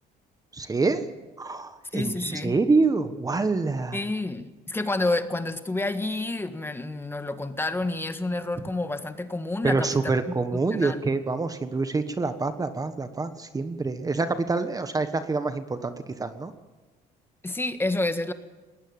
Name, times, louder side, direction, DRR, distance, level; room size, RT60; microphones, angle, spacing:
voice 1, 0.5-1.1 1.4-4.0 9.6-16.5, right 3 dB, 20° right, 10 dB, 1.4 m, -26 dB
voice 2, 1.9-2.6 3.9-11.0 17.4-18.3, left 2 dB, 15° left, 9 dB, 1.7 m, -29 dB
20.5 x 19.0 x 8.9 m, 1.2 s
cardioid pair, 110°, 17 cm